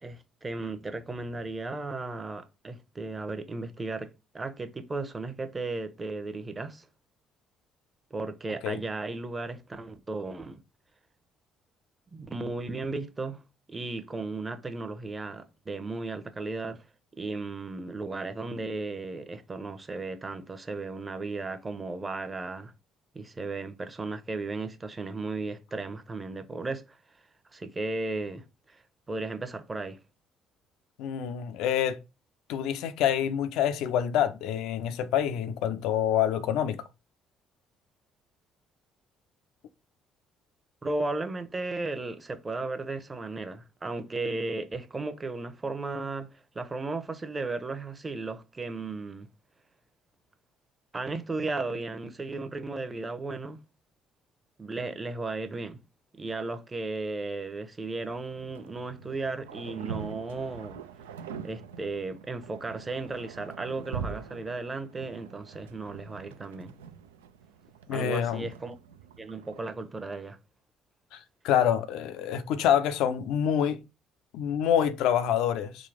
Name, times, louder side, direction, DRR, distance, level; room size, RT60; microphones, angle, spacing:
voice 1, 0.0-6.8 8.1-10.6 12.1-13.4 13.7-16.8 17.1-22.7 23.1-27.0 27.5-28.8 29.1-30.0 40.8-49.3 50.9-53.6 54.6-55.8 56.2-60.8 61.4-66.7 67.9-68.8 69.2-70.4, right 3 dB, 30° right, 0.8 m, -35 dB
voice 2, 31.0-32.0 32.5-36.8 67.9-68.4 71.1-73.8 74.3-75.9, left 9 dB, 70° left, 0.4 m, -27 dB
sound 1, 58.0-69.6, right 7 dB, 85° right, 0.4 m, -43 dB
3.7 x 2.3 x 3.4 m
hypercardioid pair, 55°, 0 cm